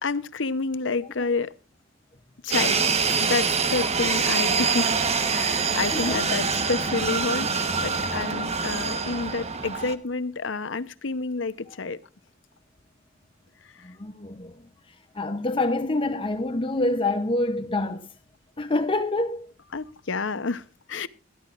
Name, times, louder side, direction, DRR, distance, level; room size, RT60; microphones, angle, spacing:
voice 1, 0.0-1.6 2.4-2.8 3.2-4.9 5.3-12.0 13.8-13.9 19.7-21.1, left 4 dB, 70° left, 0.8 m, -29 dB
sound 1, 2.5-9.9, right 5 dB, 35° right, 1.2 m, -25 dB
voice 2, 5.9-6.2 13.8-18.1 18.6-19.5, left 2 dB, 25° left, 0.7 m, -27 dB
22.0 x 13.0 x 2.5 m
head